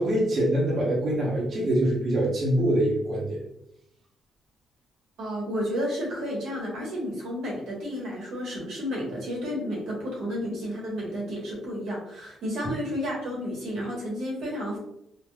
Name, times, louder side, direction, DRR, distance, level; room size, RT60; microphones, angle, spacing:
voice 1, 0.0-3.4, right 1 dB, 50° right, -4 dB, 0.8 m, -24 dB
voice 2, 5.2-14.8, equal, 80° right, -3 dB, 1.2 m, -31 dB
3.3 x 2.2 x 2.3 m, 0.77 s
cardioid pair, 90°, 0 cm